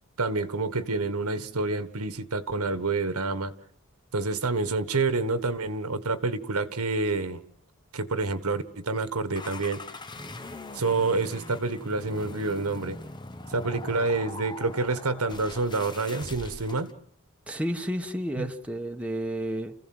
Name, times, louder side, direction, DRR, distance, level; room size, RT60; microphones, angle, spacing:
voice 1, 0.2-3.5 4.1-7.4 7.9-9.8 10.7-13.0 13.5-16.9 18.4-18.5, right 3 dB, 85° right, 12 dB, 1.5 m, -28 dB
sound 1, 9.3-16.9, left 2 dB, 20° left, 0.8 m, -41 dB
voice 2, 17.5-19.7, equal, 5° right, 4 dB, 1.2 m, -31 dB
29.5 x 15.5 x 7.8 m, 0.67 s
head